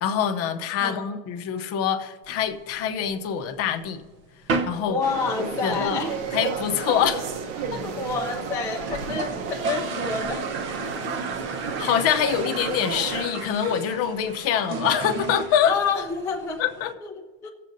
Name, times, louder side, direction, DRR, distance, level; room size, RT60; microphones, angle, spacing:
voice 1, 0.0-4.0 4.6-5.0 5.4-6.0 6.3-7.3 7.7-7.8 11.8-15.7 16.6-16.9, left 9 dB, 45° left, 7 dB, 0.8 m, -25 dB
voice 2, 0.8-1.2 4.9-6.2 7.8-10.5 10.8-11.0 15.7-16.6 17.0-17.5, left 5 dB, 10° left, 0 dB, 0.4 m, -29 dB
sound 1, 2.3-3.3 3.7-3.8 4.0-4.2 4.5-4.9 5.2-5.3 5.6-5.7 5.9-6.4 6.8-6.9 7.0-7.1 7.4-7.5 8.0-8.1 8.3-8.4 8.7-16.9, right 4 dB, 35° right, 0.6 m, -33 dB
sound 2, 5.0-13.3, right 6 dB, 90° right, 1.1 m, -32 dB
19.5 x 7.5 x 2.6 m, 1.3 s
cardioid pair, 180°, 35 cm